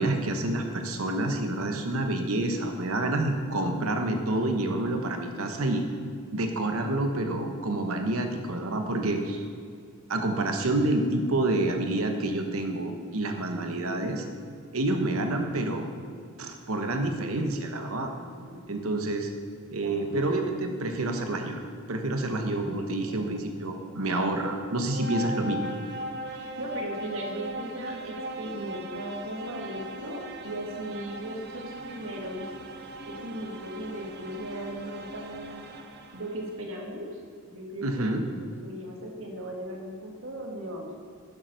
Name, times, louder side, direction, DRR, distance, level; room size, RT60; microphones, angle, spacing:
voice 1, 0.0-5.8 6.3-9.4 10.1-14.2 14.7-15.8 16.4-18.1 18.7-19.3 19.7-21.6 21.9-25.7 37.8-38.2, right 2 dB, 85° right, 5 dB, 1.1 m, -28 dB
voice 2, 18.2-18.6 19.8-20.3 22.5-22.6 23.0-23.5 26.2-32.5 33.0-35.6 36.1-40.9, right 1 dB, 65° right, 0 dB, 2.0 m, -38 dB
sound 1, 23.9-36.7, right 1 dB, 50° right, 0.8 m, -39 dB
10.5 x 7.4 x 6.4 m, 2.1 s
head